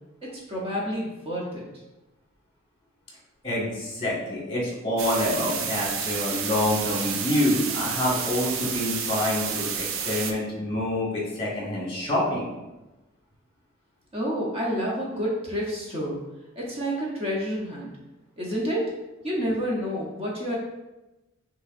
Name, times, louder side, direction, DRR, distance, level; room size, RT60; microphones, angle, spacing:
voice 1, 0.5-1.6 14.1-16.2 16.6-17.9 18.4-18.9 19.2-20.6, equal, 30° right, -4 dB, 0.8 m, -29 dB
voice 2, 3.4-12.5, left 1 dB, 25° left, -5 dB, 1.5 m, -27 dB
sound 1, 5.0-10.3, right 7 dB, 70° right, 0.5 m, -30 dB
6.1 x 3.1 x 2.5 m, 1.0 s
head